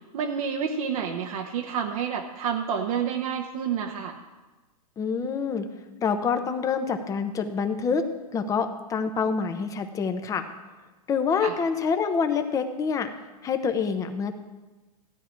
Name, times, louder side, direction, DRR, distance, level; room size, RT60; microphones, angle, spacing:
voice 1, 0.1-4.2 11.4-11.5, right 7 dB, 60° right, 2 dB, 1.0 m, -29 dB
voice 2, 5.0-5.7 6.0-8.1 8.3-10.5 11.1-13.1 13.4-14.3, left 5 dB, 15° left, 8 dB, 0.9 m, -26 dB
15.0 x 9.9 x 4.5 m, 1.2 s
hypercardioid pair, 140°, 20 cm